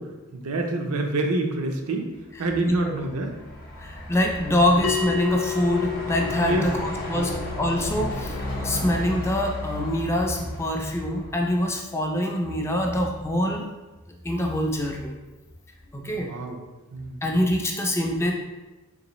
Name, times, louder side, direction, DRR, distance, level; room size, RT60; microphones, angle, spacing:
voice 1, 0.0-3.3 4.7-4.9 6.4-6.7 7.2-7.3 8.6-8.9 16.1-16.6 16.9-17.2, right 2 dB, 70° right, 3 dB, 0.5 m, -28 dB
Truck, 2.4-11.8, left 1 dB, 40° left, 0.7 m, -35 dB
voice 2, 3.9-6.8 7.1-7.3 7.6-8.4 8.6-13.6 14.2-15.1 15.9-16.3 17.2-18.3, left 1 dB, 10° left, 0 dB, 0.3 m, -24 dB
Bell, 4.8-9.9, left 9 dB, 80° left, 0.4 m, -33 dB
3.9 x 3.0 x 3.0 m, 1.1 s
head